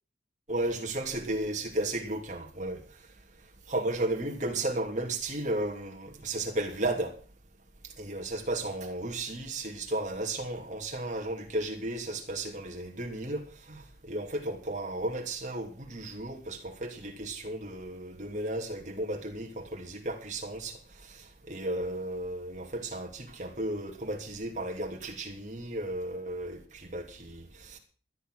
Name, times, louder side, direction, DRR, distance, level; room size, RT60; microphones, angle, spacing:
voice 1, 0.5-2.8 3.7-7.1 8.0-27.8, right 1 dB, 40° right, 2.9 m, -34 dB
14.0 x 10.0 x 6.4 m
head